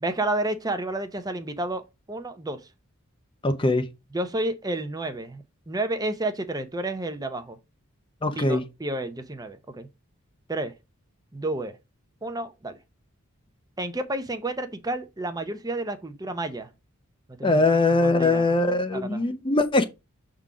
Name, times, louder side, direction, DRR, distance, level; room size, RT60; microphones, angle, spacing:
voice 1, 0.0-1.8 2.1-2.7 4.1-7.6 8.3-9.9 10.5-10.7 11.3-11.8 12.2-12.8 13.8-16.7 17.3-17.7 18.0-18.5 18.9-19.2, right 2 dB, 15° right, 0.6 m, -30 dB
voice 2, 3.4-3.9 8.2-8.6 17.4-19.9, left 2 dB, 20° left, 0.6 m, -21 dB
7.0 x 3.8 x 4.8 m
head